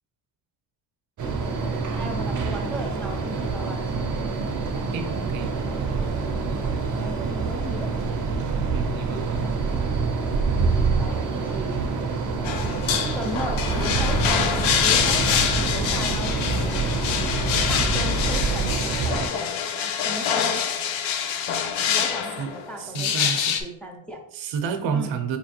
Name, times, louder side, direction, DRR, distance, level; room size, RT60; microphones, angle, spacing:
sound 1, 1.2-19.3, right 4 dB, 40° right, 0.6 m, -27 dB
voice 1, 1.9-3.9 7.0-7.9 11.0-11.8 13.0-14.2 14.7-16.6 17.5-19.4 19.8-20.7 21.8-24.2 24.9-25.1, equal, 5° left, -1 dB, 0.5 m, -36 dB
voice 2, 4.9-5.5 8.7-9.5 22.4-22.5 22.8-23.5 24.3-25.4, right 6 dB, 75° right, 7 dB, 0.7 m, -30 dB
sound 2, 12.5-23.6, left 8 dB, 85° left, 0.6 m, -26 dB
sound 3, 13.6-18.7, equal, 40° left, 0.8 m, -28 dB
4.4 x 2.9 x 2.9 m, 0.74 s
cardioid pair, 110°, 47 cm